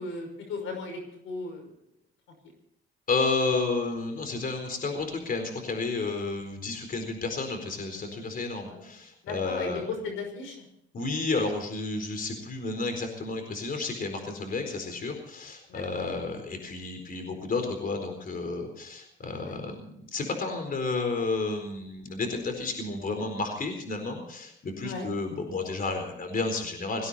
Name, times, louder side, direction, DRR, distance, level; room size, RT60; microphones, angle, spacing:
voice 1, 0.0-1.7 8.7-8.9 9.2-10.6 15.7-16.2 19.4-19.7 24.8-25.1, left 3 dB, 85° left, 4 dB, 5.8 m, -36 dB
voice 2, 3.1-9.8 10.9-27.1, left 3 dB, 45° left, 5 dB, 4.4 m, -31 dB
19.5 x 15.5 x 4.3 m, 0.72 s
cardioid pair, 90°, 20 cm